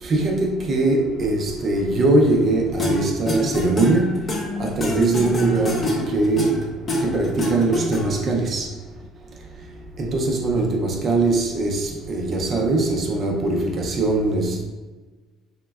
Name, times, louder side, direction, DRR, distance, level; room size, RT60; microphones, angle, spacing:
voice 1, 0.0-4.3 4.6-6.5 7.0-8.7 10.0-14.6, right 2 dB, 40° right, 0 dB, 0.4 m, -21 dB
toy guitar playing, 2.8-8.3, left 1 dB, 30° left, 0.5 m, -26 dB
3.6 x 2.0 x 2.2 m, 1.3 s
cardioid pair, 135°, 0 cm